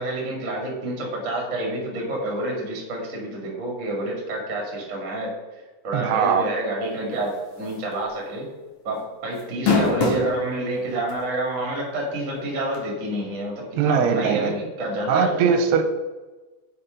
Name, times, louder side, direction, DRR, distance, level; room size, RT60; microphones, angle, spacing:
voice 1, 0.0-5.3 5.8-8.5 8.8-15.6, right 1 dB, 30° right, -1 dB, 1.5 m, -28 dB
voice 2, 5.9-6.5 13.8-14.5 15.1-15.8, right 6 dB, 85° right, 6 dB, 2.7 m, -20 dB
sound 1, 7.7-7.9 8.3-8.4 9.4-10.3 11.1-11.2 12.7-12.8, left 4 dB, 55° left, 2.2 m, -20 dB
6.8 x 6.0 x 5.2 m, 1.2 s
omnidirectional pair, 4.9 m